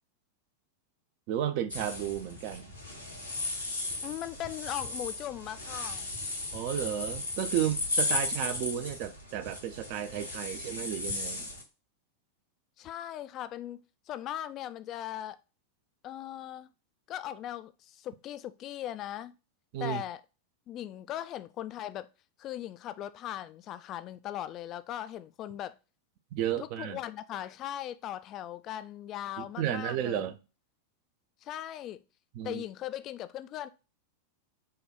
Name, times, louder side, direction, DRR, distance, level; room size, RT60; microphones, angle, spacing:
voice 1, 1.3-2.7 6.5-11.5 19.7-20.0 26.3-27.0 29.4-30.4 32.3-32.6, right 11 dB, 45° right, 0.5 m, -33 dB
sound 1, 1.7-11.6, left 2 dB, 85° left, 1.4 m, -35 dB
voice 2, 4.0-6.1 12.8-13.8 14.1-15.4 16.0-16.7 17.1-19.3 19.8-20.2 20.7-22.1 22.4-25.7 26.6-30.3 31.4-32.0 32.4-33.7, left 12 dB, 35° left, 0.3 m, -39 dB
4.5 x 2.3 x 4.8 m
figure-of-eight pair, 90°, 0 cm